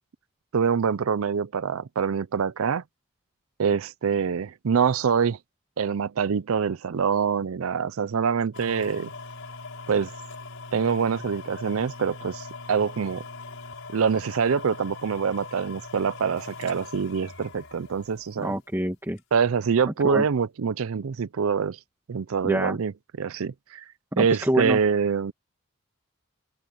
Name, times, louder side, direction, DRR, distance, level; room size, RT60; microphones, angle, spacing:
voice 1, 0.5-2.8 3.6-5.4 5.8-9.1 9.9-10.1 10.7-13.2 13.9-18.5 19.3-21.8 22.1-22.9 23.2-23.8 24.2-25.3, right 6 dB, 70° right, 0.5 m, -25 dB
sound 1, 8.5-18.6 19.2-19.3, left 3 dB, 65° left, 6.2 m, -41 dB
voice 2, 18.4-19.2 19.8-20.2 22.4-22.8 24.1-24.8, equal, 10° right, 1.6 m, -26 dB
open air
head